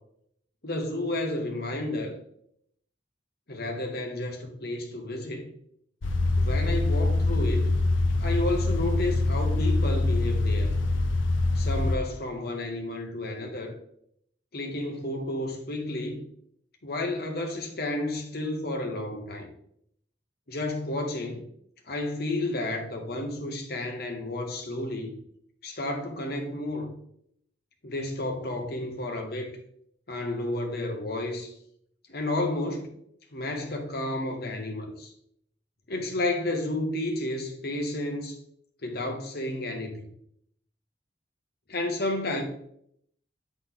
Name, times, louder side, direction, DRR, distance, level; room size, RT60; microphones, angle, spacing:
voice 1, 0.6-2.1 3.5-5.5 6.4-7.7 8.2-10.7 11.5-13.8 14.5-16.3 16.8-19.5 20.5-21.4 21.9-25.1 25.6-26.9 27.8-29.6 30.1-31.5 32.1-32.9 33.3-35.1 35.9-38.3 38.8-40.1 41.7-42.4, left 1 dB, 55° left, 1.2 m, -31 dB
sound 1, 6.0-12.0, left 2 dB, 90° left, 0.7 m, -24 dB
8.2 x 4.0 x 3.8 m
head